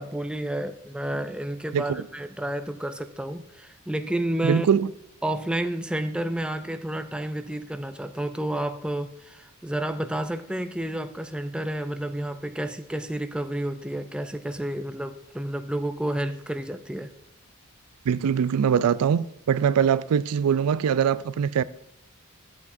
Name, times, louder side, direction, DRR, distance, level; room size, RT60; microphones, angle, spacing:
voice 1, 0.0-4.7 5.2-17.1, right 1 dB, 5° right, 0.4 m, -30 dB
voice 2, 4.4-4.9 18.1-21.6, right 7 dB, 90° right, 0.4 m, -22 dB
13.5 x 8.3 x 2.6 m
head